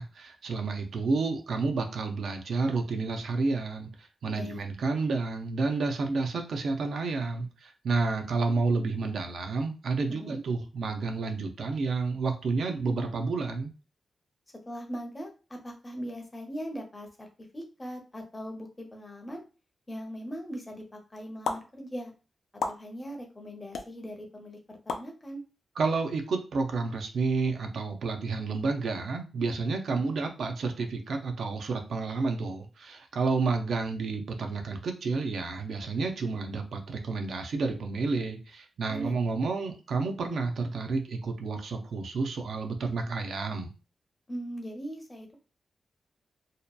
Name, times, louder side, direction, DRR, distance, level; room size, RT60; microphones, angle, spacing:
voice 1, 0.0-13.7 25.8-43.7, right 4 dB, 70° right, 5 dB, 0.4 m, -30 dB
voice 2, 4.3-4.7 10.1-10.4 14.7-17.3 17.5-19.4 19.9-22.1 22.6-25.4 29.9-30.2 38.9-39.6 44.3-45.3, equal, 20° left, 2 dB, 0.6 m, -40 dB
sound 1, 21.4-21.6 22.6-22.8 23.7-23.9 24.9-25.1, left 4 dB, 80° left, 0.3 m, -30 dB
2.7 x 2.2 x 2.3 m, 0.33 s
wide cardioid pair, 140°, 0 cm